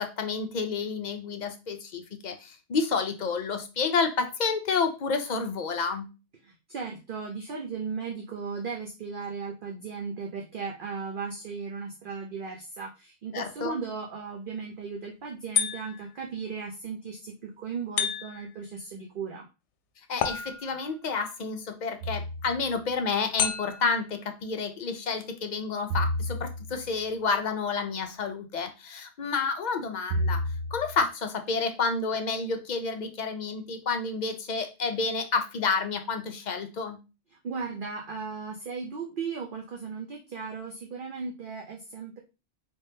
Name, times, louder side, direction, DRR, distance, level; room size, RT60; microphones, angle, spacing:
voice 1, 0.0-6.1 13.3-13.7 20.1-30.4 30.7-37.0, left 4 dB, 50° left, 6 dB, 0.6 m, -30 dB
voice 2, 6.4-19.4 37.4-42.2, right 5 dB, 55° right, 1 dB, 0.7 m, -36 dB
sound 1, 15.5-16.2 18.0-18.6 20.2-20.9 23.4-24.0, left 8 dB, 80° left, 0.9 m, -30 dB
sound 2, 22.0-22.8 25.9-27.0 30.1-31.0, equal, 85° right, 1.1 m, -31 dB
4.3 x 3.6 x 2.7 m, 0.30 s
omnidirectional pair, 1.2 m